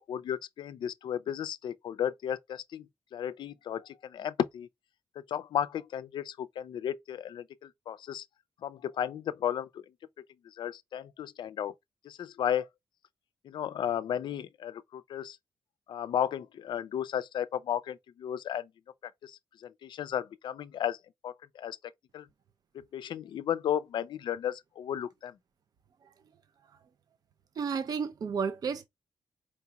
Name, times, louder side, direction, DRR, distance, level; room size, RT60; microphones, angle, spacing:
voice 1, 0.0-2.9 3.1-4.7 5.3-8.2 8.6-9.8 10.6-11.7 12.0-12.7 13.4-15.4 15.9-18.7 19.2-21.0 21.2-21.8 22.1-22.3 22.9-25.3, left 9 dB, 70° left, 0.4 m, -34 dB
voice 2, 27.6-28.9, right 6 dB, 50° right, 0.5 m, -32 dB
4.4 x 2.9 x 2.2 m
cardioid pair, 100°, 8 cm